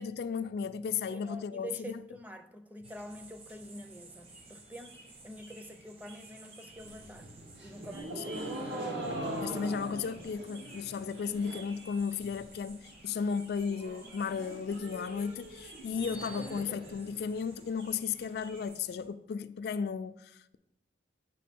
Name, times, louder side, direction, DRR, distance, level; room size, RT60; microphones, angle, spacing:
voice 1, 0.0-2.0 8.1-8.2 9.4-20.6, left 6 dB, 60° left, 0.3 m, -35 dB
voice 2, 1.1-7.3 7.6-8.8, equal, 10° right, 0.5 m, -47 dB
sound 1, 2.8-19.1, right 3 dB, 35° right, 0.9 m, -54 dB
sound 2, 4.2-18.7, right 1 dB, 55° right, 2.7 m, -60 dB
sound 3, 6.8-11.8 12.1-12.6 12.9-13.0 13.3-13.4 13.7-17.7, right 1 dB, 80° right, 1.4 m, -41 dB
8.3 x 3.6 x 6.0 m
head